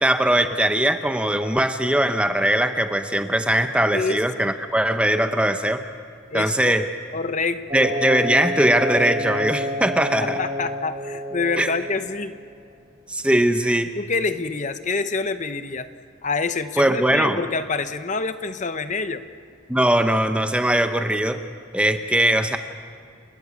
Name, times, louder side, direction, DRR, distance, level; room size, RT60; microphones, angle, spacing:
voice 1, 0.0-5.8 6.3-6.8 7.7-10.4 11.6-11.7 13.1-13.9 16.8-17.4 19.7-21.4 21.7-22.6, right 1 dB, 5° right, 8 dB, 0.8 m, -20 dB
voice 2, 6.3-6.8 7.1-7.9 10.2-12.3 14.0-15.9 16.2-19.2, left 4 dB, 40° left, 11 dB, 0.8 m, -26 dB
sound 1, 7.7-12.4, left 1 dB, 30° right, 3.8 m, -29 dB
29.5 x 13.5 x 8.5 m, 2.2 s
head